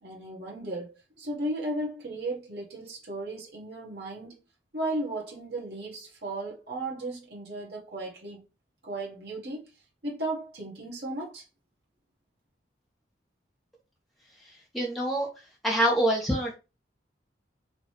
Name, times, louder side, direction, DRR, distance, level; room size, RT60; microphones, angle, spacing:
voice 1, 0.0-4.4 4.7-8.4 8.8-9.7 10.0-11.4, right 1 dB, 70° right, 1.5 m, -35 dB
voice 2, 14.7-15.3 15.6-16.5, right 1 dB, ahead, 1.5 m, -25 dB
5.0 x 3.0 x 3.3 m
head